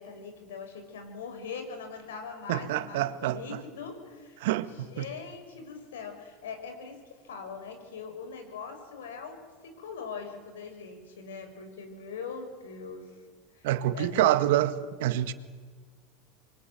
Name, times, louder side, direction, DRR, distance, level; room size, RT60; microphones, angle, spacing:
voice 1, 0.0-13.1 13.5-13.7 13.9-14.3, left 5 dB, 80° left, 6.1 m, -41 dB
voice 2, 2.5-3.4 4.4-5.1 13.6-14.7 15.0-15.3, right 14 dB, 70° right, 1.7 m, -26 dB
27.0 x 22.5 x 9.2 m
hypercardioid pair, 90°, 0 cm